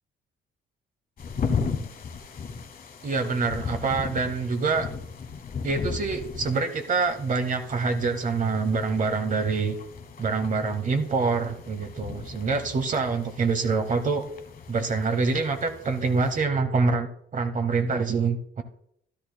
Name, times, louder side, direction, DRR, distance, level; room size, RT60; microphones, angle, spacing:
sound 1, 1.2-16.4, left 5 dB, 45° left, 1.0 m, -36 dB
voice 1, 3.0-4.9 5.6-9.7 10.2-14.2 14.7-18.6, right 4 dB, 40° right, 7 dB, 0.9 m, -26 dB
13.0 x 11.0 x 2.2 m, 0.71 s
cardioid pair, 90°, 20 cm